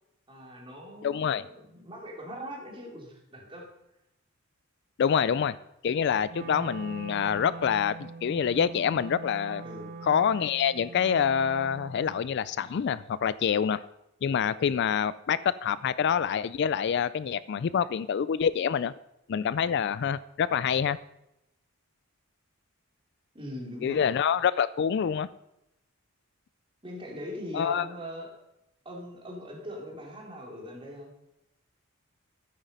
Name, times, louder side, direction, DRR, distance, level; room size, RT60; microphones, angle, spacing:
voice 1, 0.3-3.7 9.6-9.9 23.3-24.1 26.8-28.3 28.8-31.1, equal, 25° right, -1 dB, 3.2 m, -41 dB
voice 2, 1.0-1.4 5.0-5.6 5.8-9.6 10.0-13.9 14.2-18.9 19.3-21.0 23.8-25.3 27.5-27.9, left 7 dB, 50° left, 17 dB, 0.3 m, -26 dB
Wind instrument woodwind instrument, 6.3-12.3, right 4 dB, 40° right, 0.3 m, -43 dB
13.0 x 9.0 x 5.4 m, 0.87 s
head